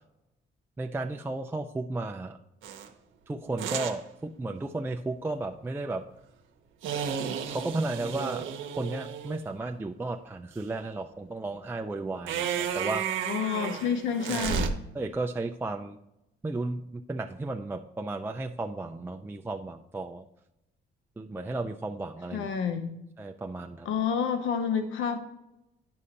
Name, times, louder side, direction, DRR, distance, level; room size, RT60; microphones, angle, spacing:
voice 1, 0.8-2.4 3.3-6.0 7.5-8.5 8.7-13.0 14.9-16.0 16.4-20.2 21.2-22.5 23.2-23.9, right 2 dB, 10° right, 3 dB, 0.4 m, -34 dB
sound 1, 2.6-2.9 3.6-4.0 6.8-9.4 12.3-14.7, right 7 dB, 80° right, 0.8 m, -32 dB
voice 2, 13.3-14.7 22.3-22.9 23.8-25.2, left 7 dB, 75° left, 7 dB, 0.7 m, -29 dB
9.5 x 6.3 x 2.8 m, 0.87 s
cardioid pair, 90°, 20 cm